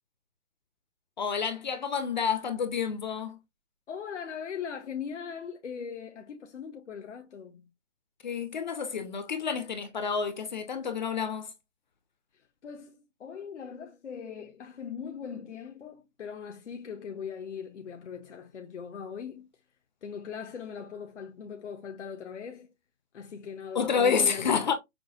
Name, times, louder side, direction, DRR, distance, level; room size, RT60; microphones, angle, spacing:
voice 1, 1.2-3.4 8.2-11.5 23.7-24.7, left 6 dB, 40° left, 0.6 m, -29 dB
voice 2, 3.9-7.7 12.6-19.5 20.0-22.7 23.1-24.7, left 7 dB, 70° left, 0.8 m, -40 dB
6.0 x 2.1 x 2.5 m
hypercardioid pair, 150°, 36 cm